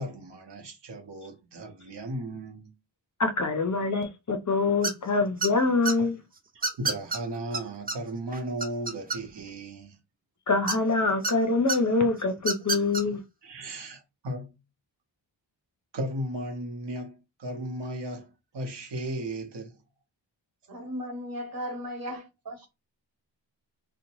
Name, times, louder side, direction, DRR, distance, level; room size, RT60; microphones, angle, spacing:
voice 1, 0.0-2.8 6.5-10.0 13.4-14.5 15.9-19.8, right 1 dB, 65° right, 0.9 m, -36 dB
voice 2, 3.2-6.2 10.5-13.2, left 3 dB, 40° left, 0.5 m, -25 dB
sound 1, 4.8-5.1 5.4-5.9 6.6-7.2 7.5-7.6 7.9-8.0 8.3-9.5 10.7-11.3 11.7-11.8 12.4-13.0, right 3 dB, 20° right, 0.3 m, -28 dB
voice 3, 20.7-22.7, equal, 50° right, 1.2 m, -36 dB
2.8 x 2.1 x 2.9 m
wide cardioid pair, 120°, 47 cm